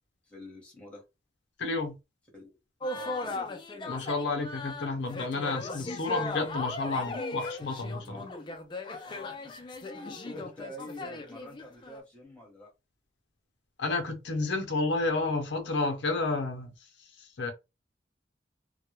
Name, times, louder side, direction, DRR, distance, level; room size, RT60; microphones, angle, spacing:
voice 1, 0.3-1.0 2.3-2.6 2.9-3.5 8.0-8.3 10.2-12.7, equal, 5° left, 0.9 m, -46 dB
voice 2, 1.6-1.9 3.9-8.2 13.8-16.7 17.2-17.5, left 3 dB, 80° left, 0.6 m, -31 dB
sound 1, 2.8-12.0, left 2 dB, 25° left, 0.3 m, -37 dB
2.1 x 2.1 x 2.9 m
head